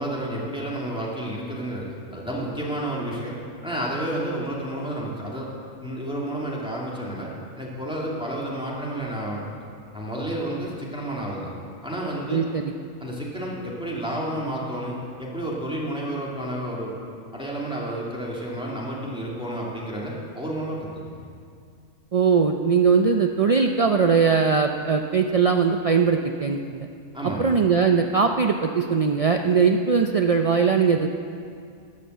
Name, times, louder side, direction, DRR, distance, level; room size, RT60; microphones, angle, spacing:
voice 1, 0.0-3.4 3.6-5.5 5.8-7.3 7.6-9.4 9.9-11.5 11.8-12.4 13.0-16.9 17.3-21.3 27.1-27.5, right 1 dB, 5° right, -5 dB, 2.4 m, -30 dB
voice 2, 12.3-12.7 22.1-26.9 27.4-31.1, right 5 dB, 60° right, 4 dB, 0.3 m, -20 dB
12.0 x 9.6 x 7.9 m, 2.3 s
omnidirectional pair, 1.4 m